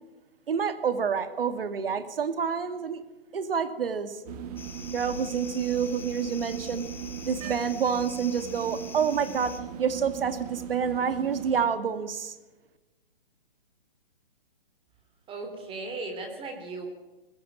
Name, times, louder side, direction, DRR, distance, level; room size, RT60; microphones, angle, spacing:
voice 1, 0.5-3.0 3.3-4.2 4.9-6.8 7.3-12.3, right 6 dB, 75° right, 11 dB, 2.4 m, -28 dB
sound 1, 4.3-11.7, right 9 dB, 40° right, 1.9 m, -38 dB
sound 2, 4.6-9.6, left 5 dB, 5° left, 1.4 m, -45 dB
voice 2, 15.3-16.9, right 3 dB, 20° right, 5 dB, 3.4 m, -36 dB
20.5 x 15.5 x 8.9 m, 1.1 s
hypercardioid pair, 145°, 29 cm